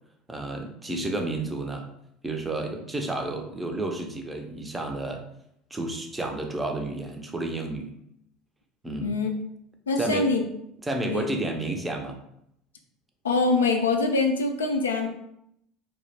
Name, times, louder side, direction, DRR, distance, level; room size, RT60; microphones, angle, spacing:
voice 1, 0.3-1.9 2.2-5.2 5.7-7.9 8.8-9.2 10.0-10.3 10.8-12.2, right 2 dB, 15° right, 3 dB, 0.5 m, -31 dB
voice 2, 9.0-9.3 9.9-10.4 11.0-11.3 13.2-15.1, left 3 dB, 80° left, 3 dB, 0.3 m, -24 dB
2.3 x 2.0 x 3.2 m, 0.76 s
figure-of-eight pair, 70°, 0 cm